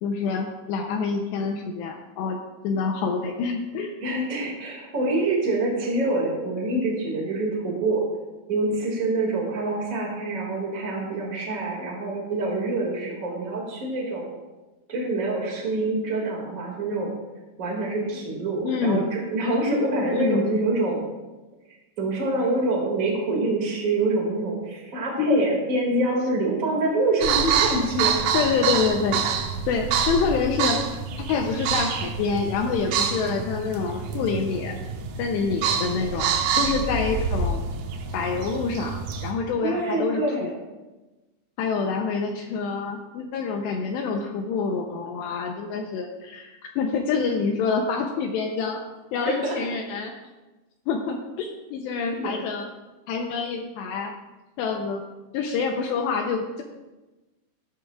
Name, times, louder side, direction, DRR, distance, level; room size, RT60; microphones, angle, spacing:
voice 1, 0.0-2.4 2.6-3.9 18.6-19.1 20.1-20.5 25.2-25.4 28.3-29.2 29.7-34.8 35.2-37.6 38.1-40.5 41.6-48.8 49.1-50.1 50.9-52.7 53.1-54.1 54.6-55.0 55.3-56.6, left 5 dB, 80° left, 3 dB, 2.6 m, -27 dB
voice 2, 4.0-8.0 8.5-14.3 14.9-17.1 17.6-21.0 22.0-28.2 39.6-40.5 49.2-49.6 52.1-52.4, right 2 dB, 55° right, -2 dB, 0.8 m, -26 dB
sound 1, 27.2-39.3, right 6 dB, 80° right, 3.4 m, -27 dB
15.0 x 12.0 x 2.4 m, 1.1 s
omnidirectional pair, 5.6 m